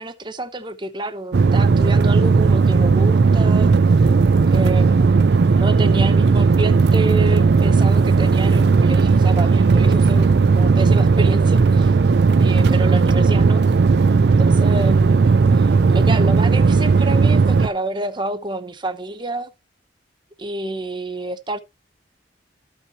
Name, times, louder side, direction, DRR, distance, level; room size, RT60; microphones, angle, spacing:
voice 1, 0.0-3.7 4.4-12.0 12.4-13.6 14.4-19.5 20.4-21.6, right 2 dB, 25° right, 0.9 m, -29 dB
sound 1, 1.3-17.7, right 4 dB, 60° right, 0.4 m, -15 dB
13.5 x 5.7 x 3.0 m
head